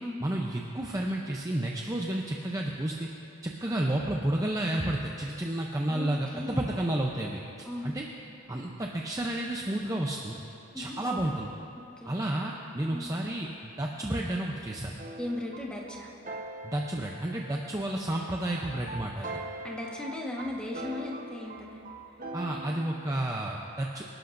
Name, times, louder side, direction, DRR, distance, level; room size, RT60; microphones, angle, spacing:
voice 1, 0.2-3.1 3.4-8.1 8.5-10.4 10.8-11.5 12.1-15.0 16.6-19.3 22.3-24.0, right 1 dB, 15° right, -1 dB, 0.6 m, -31 dB
voice 2, 5.9-6.7 7.6-8.0 10.7-11.2 12.0-12.2 12.9-13.1 15.2-16.1 19.6-21.8, left 1 dB, 5° left, -2 dB, 1.4 m, -37 dB
sound 1, 15.0-23.3, right 2 dB, 40° right, 1.0 m, -42 dB
25.0 x 12.0 x 2.6 m, 2.7 s
head